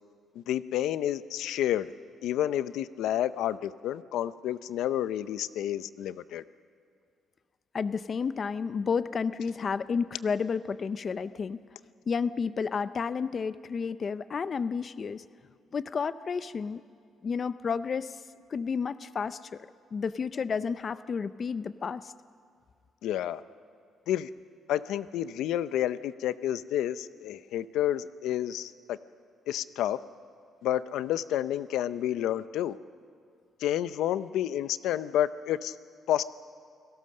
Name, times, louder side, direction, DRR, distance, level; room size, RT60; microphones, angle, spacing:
voice 1, 0.4-1.9 2.2-6.4 23.0-23.4 24.1-24.3 24.7-29.0 29.5-30.0 30.6-32.8 33.6-35.7 36.1-36.2, left 11 dB, 85° left, 15 dB, 0.6 m, -30 dB
voice 2, 7.7-11.6 12.1-15.2 15.7-16.8 17.2-18.2 18.5-22.1, left 5 dB, 35° left, 14 dB, 0.5 m, -31 dB
28.5 x 18.0 x 6.6 m, 2.2 s
cardioid pair, 135°, 0 cm